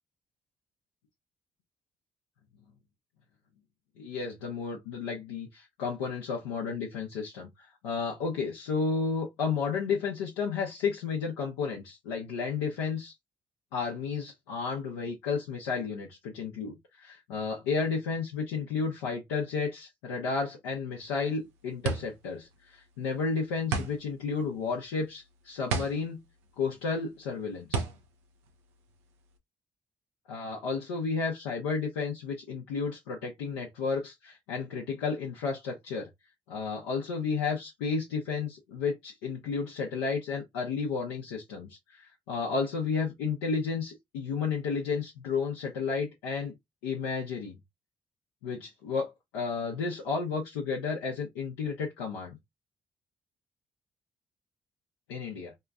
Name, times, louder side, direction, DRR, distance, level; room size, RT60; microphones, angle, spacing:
voice 1, 4.0-13.1 13.7-26.2 26.6-27.8 30.3-36.1 36.5-46.5 46.8-47.6 48.4-52.4 55.1-55.5, left 5 dB, 85° left, 0.7 m, -32 dB
sound 1, 21.0-29.4, right 5 dB, 90° right, 0.6 m, -35 dB
2.9 x 2.4 x 2.4 m
hypercardioid pair, 45°, 14 cm